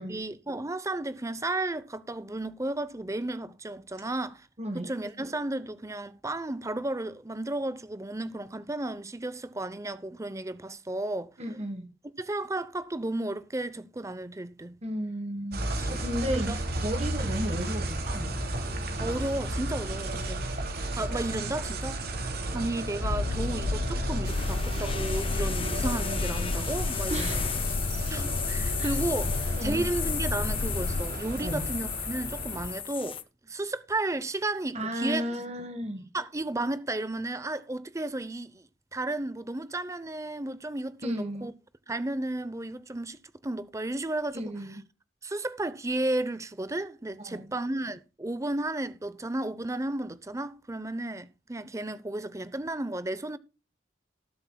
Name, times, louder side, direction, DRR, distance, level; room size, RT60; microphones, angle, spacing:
voice 1, 0.0-4.5 4.7-11.3 12.2-14.8 15.6-16.6 19.0-20.5 20.9-22.0 22.5-27.6 28.1-29.3 29.6-35.2 36.1-41.5 41.9-44.8 45.2-53.4, right 2 dB, 15° right, 0.7 m, -33 dB
voice 2, 4.6-4.9 11.4-11.8 14.8-16.5 16.8-18.3 27.1-27.6 28.8-28.9 29.5-29.8 31.4-31.7 34.7-36.1 41.0-41.5 44.3-44.8 47.2-47.5, equal, 35° right, 1.5 m, -34 dB
sound 1, 15.5-32.8, right 1 dB, 60° right, 2.8 m, -33 dB
sound 2, 23.0-31.0, left 3 dB, 55° left, 0.5 m, -32 dB
sound 3, 24.3-33.2, left 8 dB, 30° left, 0.9 m, -35 dB
19.0 x 7.9 x 2.3 m
head